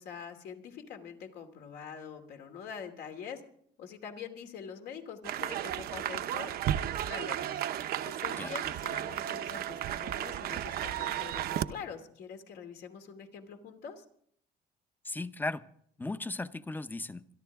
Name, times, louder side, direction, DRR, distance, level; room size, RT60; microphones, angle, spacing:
voice 1, 0.0-3.4 3.8-6.5 6.9-7.6 8.0-14.0, left 7 dB, 75° left, 2.7 m, -44 dB
sound 1, 5.2-11.7, right 11 dB, 65° right, 0.8 m, -34 dB
voice 2, 15.0-15.7 16.0-17.3, left 2 dB, 10° left, 0.7 m, -36 dB
26.5 x 11.5 x 3.6 m
cardioid pair, 110°, 17 cm